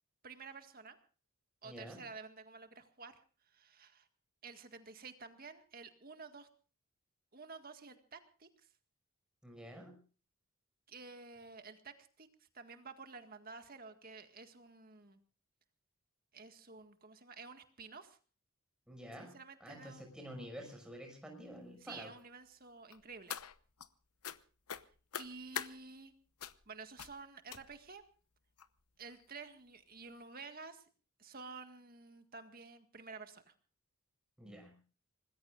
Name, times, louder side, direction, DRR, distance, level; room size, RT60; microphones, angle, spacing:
voice 1, 0.2-1.0 1.6-3.1 3.5-4.1 4.4-6.5 7.3-8.5 10.9-12.3 12.5-15.2 16.3-18.2 19.2-20.1 21.8-23.4 24.8-24.9 25.2-26.1 26.7-28.0 29.0-30.8 31.2-33.5, right 4 dB, 40° right, 7 dB, 1.8 m, -51 dB
voice 2, 1.6-2.0 9.4-10.0 18.9-22.1 34.4-34.8, equal, 5° right, 2 dB, 6.1 m, -49 dB
sound 1, 22.9-23.9 24.2-24.4 24.7-25.7 26.4-26.7 27.0-27.2 27.5-27.9 28.6-28.7 29.1-29.2 29.5-29.6, left 9 dB, 85° left, 0.9 m, -43 dB
25.5 x 20.5 x 2.5 m, 0.38 s
head